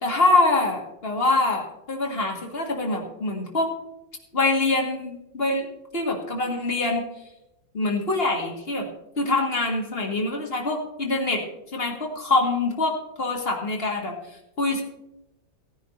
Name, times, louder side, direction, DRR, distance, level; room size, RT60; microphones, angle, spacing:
voice 1, 0.0-3.7 4.3-5.7 5.9-7.1 7.7-8.9 9.2-11.4 11.7-14.2 14.6-14.8, left 2 dB, 30° left, 0 dB, 1.9 m, -24 dB
17.5 x 10.0 x 2.6 m, 0.88 s
omnidirectional pair, 2.2 m